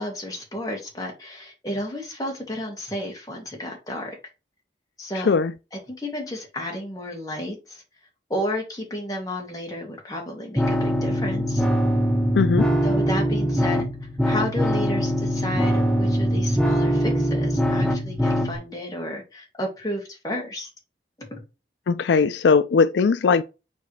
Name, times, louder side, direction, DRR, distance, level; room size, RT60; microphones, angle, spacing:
voice 1, 0.0-4.2 5.0-5.4 5.7-7.8 8.3-11.7 12.8-13.8 14.3-20.7 21.3-21.4, left 1 dB, 20° left, 2.5 m, -32 dB
sound 1, 10.6-18.6, equal, 5° left, 0.8 m, -22 dB
voice 2, 12.3-12.7 21.9-23.4, left 5 dB, 80° left, 0.4 m, -19 dB
7.1 x 4.2 x 3.3 m
head